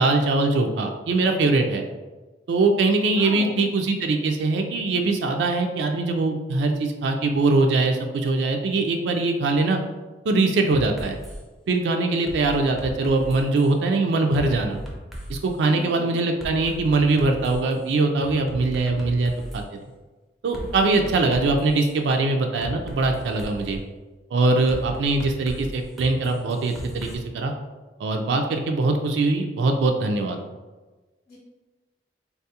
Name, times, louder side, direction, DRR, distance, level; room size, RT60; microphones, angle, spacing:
voice 1, 0.0-1.8 2.5-9.8 10.3-11.2 11.7-14.8 15.3-19.6 20.4-23.8 24.3-27.5 28.0-30.4, right 3 dB, 75° right, 3 dB, 0.3 m, -22 dB
voice 2, 3.1-3.6 15.7-16.2 31.3-31.4, left 1 dB, 55° left, -5 dB, 0.6 m, -38 dB
sound 1, 10.7-11.4 12.3-13.7 14.3-15.5 16.4-17.7 18.2-19.6 20.5-21.9 22.6-23.8 24.7-27.1, equal, ahead, 0.4 m, -37 dB
3.7 x 2.3 x 2.8 m, 1.2 s
head